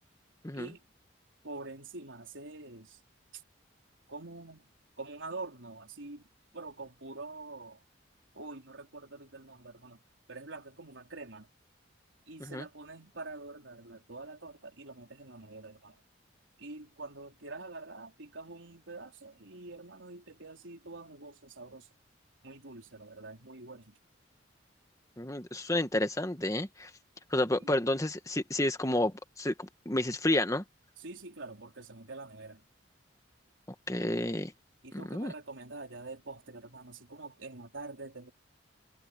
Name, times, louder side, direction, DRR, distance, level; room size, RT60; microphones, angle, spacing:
voice 1, 1.4-3.0 3.3-3.4 4.1-4.7 5.0-6.3 6.5-7.8 8.3-10.0 10.3-11.5 12.3-16.0 16.6-21.9 22.4-24.0 27.6-27.8 31.0-32.6 34.8-38.3, right 3 dB, 85° right, 3.7 m, -45 dB
voice 2, 25.2-26.9 27.3-30.6 33.9-34.5 34.9-35.3, left 1 dB, 15° left, 1.5 m, -30 dB
head